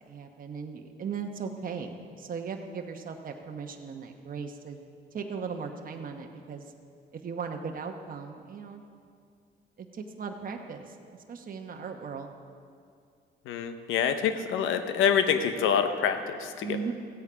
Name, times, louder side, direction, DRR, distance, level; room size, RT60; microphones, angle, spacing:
voice 1, 0.1-4.8 5.1-6.6 7.1-8.8 9.8-11.0 11.3-12.4 16.6-16.9, right 5 dB, 45° right, 3 dB, 1.0 m, -37 dB
voice 2, 13.5-16.8, left 7 dB, 90° left, 9 dB, 0.9 m, -26 dB
15.0 x 8.2 x 5.0 m, 2.3 s
cardioid pair, 90°, 20 cm